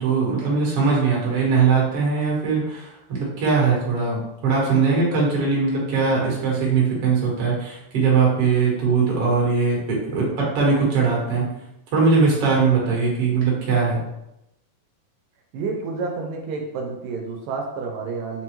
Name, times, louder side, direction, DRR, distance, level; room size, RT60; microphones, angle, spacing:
voice 1, 0.0-11.5 11.9-14.0, right 5 dB, 60° right, -4 dB, 1.7 m, -20 dB
voice 2, 15.5-18.4, right 4 dB, 85° right, 2 dB, 2.1 m, -29 dB
5.6 x 2.2 x 3.0 m, 0.87 s
omnidirectional pair, 3.8 m